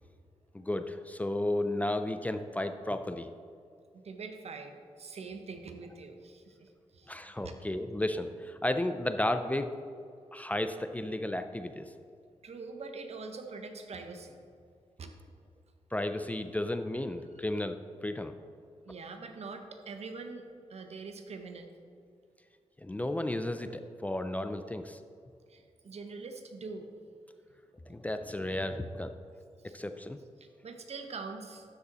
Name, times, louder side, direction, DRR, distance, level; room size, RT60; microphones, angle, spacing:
voice 1, 0.5-3.3 7.1-9.7 10.3-11.9 15.9-18.3 18.9-19.0 22.8-25.0 27.9-29.1 29.7-30.2, left 1 dB, 15° left, 8 dB, 0.4 m, -33 dB
voice 2, 3.9-7.5 12.4-14.4 15.0-15.1 18.8-21.7 25.5-26.9 29.6-29.7 30.4-31.6, right 4 dB, 65° right, 6 dB, 0.9 m, -44 dB
12.0 x 5.3 x 4.1 m, 2.4 s
wide cardioid pair, 100°, 12 cm